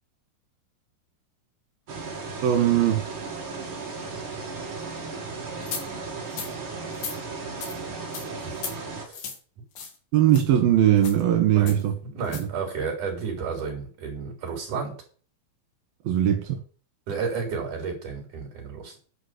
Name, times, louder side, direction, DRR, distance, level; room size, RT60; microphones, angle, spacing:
sound 1, 1.9-9.1, right 4 dB, 40° right, 2.5 m, -35 dB
voice 1, 2.4-3.0 10.1-11.9 12.4-12.5 16.0-16.6, right 11 dB, 90° right, 3 dB, 3.3 m, -20 dB
sound 2, 5.7-5.8 6.3-6.5 6.9-7.2 7.6-7.8 8.1-8.3 8.6-8.8 9.1-9.4 9.8-10.0 10.3-10.4 11.0-11.2 11.7-11.8 12.2-12.4, left 6 dB, 80° left, 3.9 m, -35 dB
voice 2, 11.5-14.9 17.1-19.0, right 5 dB, 60° right, 2 dB, 5.0 m, -32 dB
11.5 x 5.2 x 6.7 m, 0.42 s
omnidirectional pair, 4.1 m